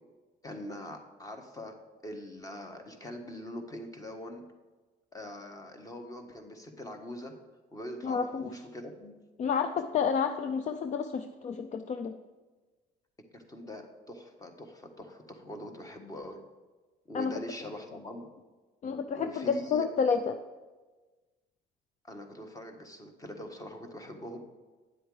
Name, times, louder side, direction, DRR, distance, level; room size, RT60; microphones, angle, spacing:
voice 1, 0.4-1.8 2.0-4.5 5.1-7.3 7.7-9.1 13.3-16.4 17.1-18.3 19.1-19.9 22.0-24.4, left 1 dB, 20° left, 5 dB, 1.5 m, -43 dB
voice 2, 8.0-8.5 9.4-12.1 17.1-17.3 18.8-20.4, left 6 dB, 45° left, 8 dB, 0.5 m, -30 dB
9.6 x 7.8 x 4.9 m, 1.3 s
cardioid pair, 110°, 17 cm